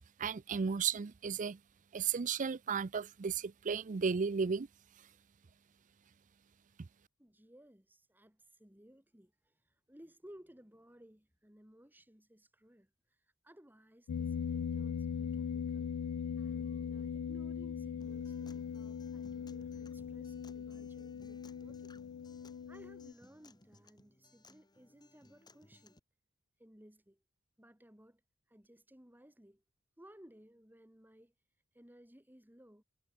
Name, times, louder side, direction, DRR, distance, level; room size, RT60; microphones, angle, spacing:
voice 1, 0.2-1.6 1.9-4.7, right 6 dB, 35° right, 0.5 m, -34 dB
voice 2, 7.2-12.9 13.4-15.9 16.4-21.9 22.7-25.9 26.6-27.2 27.6-28.2 28.5-29.6 30.0-31.3 31.7-32.8, equal, 10° right, 2.9 m, -60 dB
sound 1, 14.1-23.1, left 7 dB, 80° left, 0.4 m, -39 dB
Acoustic guitar, 18.0-26.0, left 2 dB, 20° left, 2.3 m, -63 dB
head